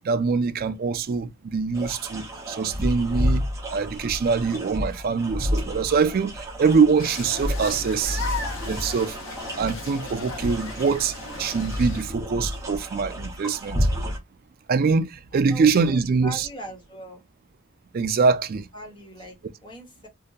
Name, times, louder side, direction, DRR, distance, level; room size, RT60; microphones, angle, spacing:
voice 1, 0.0-8.2 8.6-9.2 9.6-11.1 11.4-13.8 14.7-16.5 17.9-18.7, right 5 dB, 40° right, 0.3 m, -23 dB
sound 1, 1.7-14.2, equal, 15° right, 0.7 m, -30 dB
sound 2, 7.0-12.0, left 3 dB, 65° left, 0.9 m, -36 dB
voice 2, 15.3-17.2 18.7-20.1, equal, 20° left, 1.0 m, -41 dB
2.7 x 2.2 x 2.3 m
head